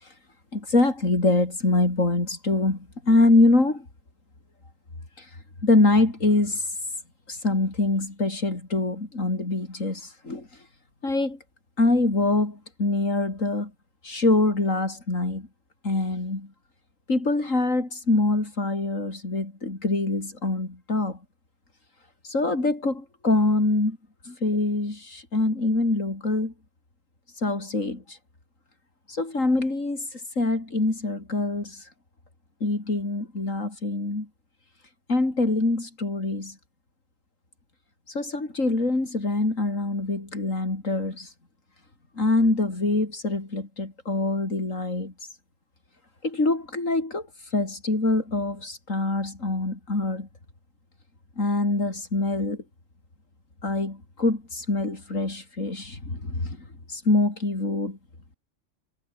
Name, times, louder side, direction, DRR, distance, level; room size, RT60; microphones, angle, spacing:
voice 1, 0.5-3.9 5.2-5.3 5.6-6.6 7.3-10.5 11.0-11.4 11.8-13.7 14.0-15.5 15.8-16.5 17.1-21.2 22.2-24.0 24.3-26.5 27.4-28.2 29.1-30.1 30.4-31.8 32.6-34.3 35.1-36.6 38.1-41.3 42.2-45.1 46.2-47.3 47.5-50.3 51.4-52.6 53.6-58.0, left 2 dB, 85° left, 5.2 m, -24 dB
omnidirectional pair, 1.3 m